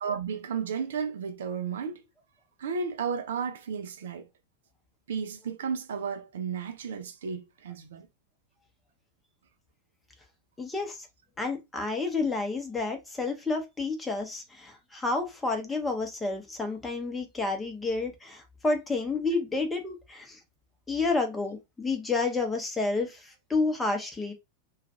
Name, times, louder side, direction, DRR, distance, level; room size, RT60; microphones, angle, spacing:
voice 1, 0.0-2.0 2.6-4.3 5.1-8.1, right 6 dB, 60° right, 0.4 m, -33 dB
voice 2, 10.6-11.1 11.4-20.4 20.9-24.3, left 3 dB, 10° left, 0.7 m, -30 dB
2.3 x 2.2 x 2.7 m
figure-of-eight pair, 90°, 0 cm